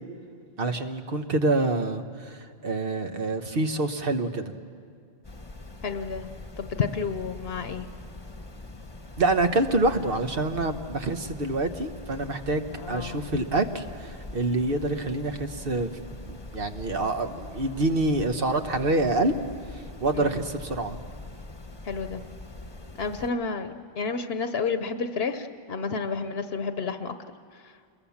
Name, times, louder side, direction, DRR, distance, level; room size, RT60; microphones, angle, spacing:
voice 1, 0.6-4.5 9.2-15.9 16.2-19.3 20.0-21.0, right 2 dB, 60° right, 7 dB, 1.3 m, -26 dB
sound 1, 5.2-23.3, left 2 dB, 25° left, 1.1 m, -43 dB
voice 2, 5.8-6.3 6.6-7.9 12.8-13.3 20.1-20.4 21.8-22.2 23.0-27.1, left 5 dB, 70° left, 9 dB, 1.0 m, -30 dB
27.5 x 22.0 x 7.2 m, 2.2 s
omnidirectional pair, 1.1 m